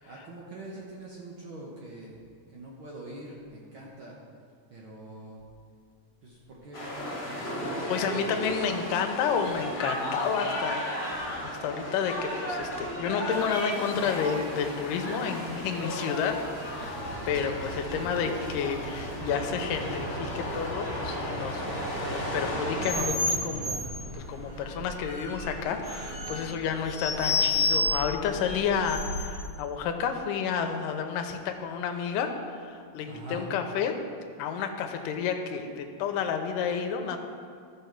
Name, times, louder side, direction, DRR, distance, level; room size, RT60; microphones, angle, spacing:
voice 1, 0.1-2.1 2.5-4.1 4.7-5.4 6.2-8.3 17.9-18.3 33.1-33.5, right 1 dB, 85° right, -4 dB, 1.1 m, -44 dB
sound 1, 6.7-23.0, equal, 25° left, 2.2 m, -34 dB
voice 2, 7.9-17.0 17.3-21.6 22.0-23.9 24.1-33.9 34.4-37.2, left 7 dB, 80° left, 5 dB, 2.3 m, -31 dB
Engine starting, 8.4-8.7 9.4-9.7 10.1-10.6 11.0-11.6 12.0-12.2 12.5-23.9, right 2 dB, 65° right, 2.7 m, -42 dB
sound 2, 22.8-29.4, left 2 dB, 40° right, 2.4 m, -31 dB
13.0 x 6.3 x 4.6 m, 2.2 s
omnidirectional pair, 3.9 m